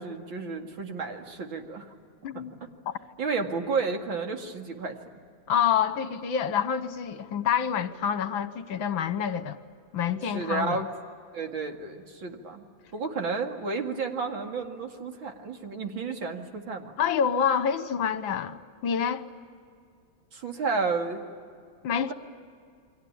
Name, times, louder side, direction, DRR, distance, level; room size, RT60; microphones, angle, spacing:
voice 1, 0.0-1.9 2.3-2.7 3.2-5.0 10.3-10.8 11.3-12.7 12.9-16.9 20.3-21.2 22.0-22.1, right 4 dB, 70° right, 3.0 m, -32 dB
voice 2, 5.5-9.6 9.9-10.8 17.0-19.3 21.8-22.1, left 8 dB, 70° left, 1.8 m, -27 dB
29.5 x 23.5 x 8.6 m
omnidirectional pair, 2.3 m